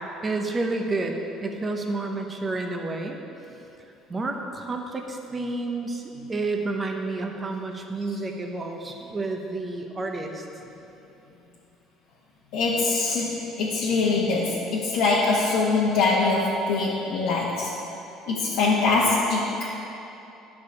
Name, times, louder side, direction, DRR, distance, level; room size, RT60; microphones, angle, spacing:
voice 1, 0.2-3.2 4.1-6.0 6.3-10.4, right 2 dB, 20° right, 3 dB, 0.9 m, -30 dB
voice 2, 12.5-17.7 18.3-19.7, left 3 dB, 75° left, -6 dB, 1.2 m, -23 dB
11.5 x 5.0 x 7.0 m, 3.0 s
cardioid pair, 145°, 0 cm